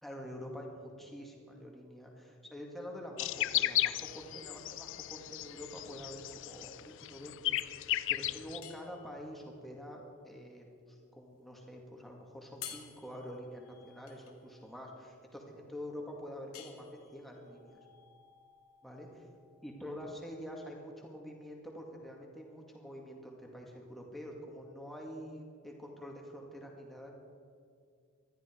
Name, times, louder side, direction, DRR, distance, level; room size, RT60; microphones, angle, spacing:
voice 1, 0.0-17.8 18.8-19.2 19.6-27.1, equal, ahead, -1 dB, 2.2 m, -47 dB
sound 1, 3.2-8.6, left 14 dB, 55° left, 0.4 m, -35 dB
sound 2, 3.8-20.6, left 10 dB, 80° left, 2.1 m, -55 dB
20.0 x 13.5 x 4.6 m, 2.3 s
head